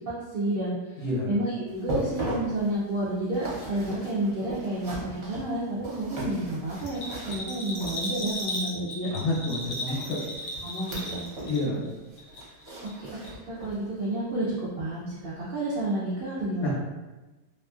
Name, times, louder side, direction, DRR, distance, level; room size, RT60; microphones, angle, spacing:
voice 1, 0.0-9.1 10.6-11.8 12.9-13.1 13.5-16.7, right 1 dB, 80° right, -8 dB, 0.5 m, -30 dB
voice 2, 1.0-1.3 9.1-10.2 11.5-11.9 16.6-16.7, left 2 dB, 85° left, -5 dB, 1.6 m, -29 dB
sound 1, 1.7-8.4 9.8-11.6 11.9-13.9 14.3-14.5 15.0-15.1, equal, 50° right, 1.0 m, -38 dB
Bell, 6.8-11.9 12.2-13.0 13.2-13.3, left 1 dB, 60° left, 0.9 m, -35 dB
3.1 x 2.4 x 2.4 m, 1.1 s
omnidirectional pair, 1.7 m